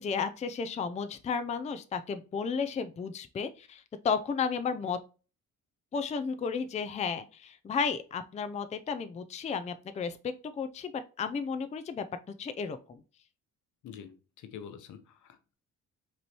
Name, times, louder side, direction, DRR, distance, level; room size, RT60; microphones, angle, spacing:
voice 1, 0.0-5.0 5.9-12.1 12.4-13.0, left 5 dB, 25° left, 10 dB, 0.4 m, -33 dB
voice 2, 13.8-15.5, left 8 dB, 75° left, 8 dB, 0.9 m, -47 dB
5.1 x 3.1 x 2.9 m, 0.34 s
cardioid pair, 90°, 30 cm